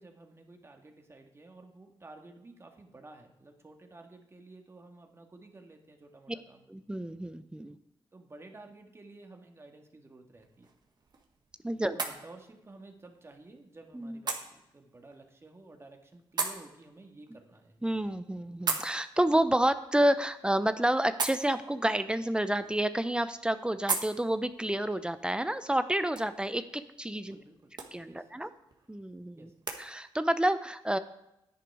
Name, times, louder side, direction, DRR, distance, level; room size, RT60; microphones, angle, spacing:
voice 1, 0.0-6.7 8.1-10.7 11.9-18.0 27.1-27.7 28.0-28.5 29.4-29.6, right 2 dB, 30° right, 3 dB, 1.9 m, -53 dB
voice 2, 6.7-7.8 11.6-12.0 13.9-14.2 17.8-27.4 27.9-28.5 28.9-29.5 29.8-31.0, right 1 dB, 10° right, 11 dB, 0.6 m, -29 dB
sound 1, 10.3-29.8, right 4 dB, 50° right, 1.7 m, -41 dB
10.5 x 9.9 x 4.8 m, 0.86 s
cardioid pair, 70°, 9 cm